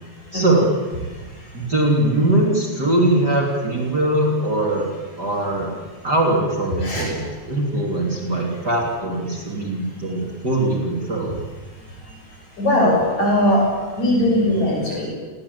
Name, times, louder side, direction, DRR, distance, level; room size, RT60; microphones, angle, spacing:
voice 1, 0.3-0.7 1.5-4.9 5.2-5.7 6.0-7.2 7.5-11.3, right 1 dB, 35° right, 0 dB, 3.9 m, -21 dB
voice 2, 12.6-13.6 14.0-15.1, left 1 dB, 70° left, -1 dB, 8.6 m, -19 dB
29.0 x 22.5 x 8.6 m, 1.3 s
omnidirectional pair, 3.4 m